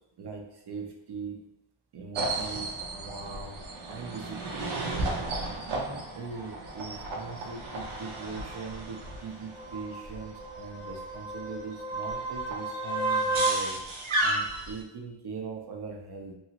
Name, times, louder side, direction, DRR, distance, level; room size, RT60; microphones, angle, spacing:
voice 1, 0.2-1.4 1.9-3.6 3.9-4.8 5.7-13.8 14.2-16.3, right 4 dB, 55° right, 1 dB, 0.7 m, -41 dB
sound 1, 2.2-14.8, right 2 dB, 85° right, 0.8 m, -33 dB
3.1 x 2.9 x 2.8 m, 0.89 s
wide cardioid pair, 155°, 48 cm